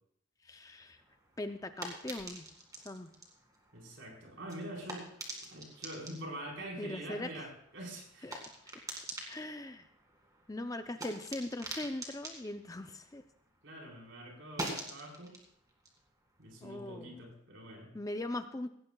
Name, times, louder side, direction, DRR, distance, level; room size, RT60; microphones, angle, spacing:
voice 1, 0.4-1.0 1.4-2.5 2.8-3.1 6.8-7.5 8.2-8.4 9.3-9.9 10.5-13.2 16.6-17.2 17.9-18.7, left 1 dB, 15° left, 8 dB, 0.5 m, -40 dB
sound 1, 1.0-13.7 14.0-17.3, right 1 dB, 15° right, 2.1 m, -47 dB
voice 2, 3.7-5.1 5.5-8.4 13.6-15.4 16.4-18.0, right 1 dB, 60° right, -1 dB, 4.3 m, -45 dB
17.5 x 16.0 x 2.3 m, 0.69 s
head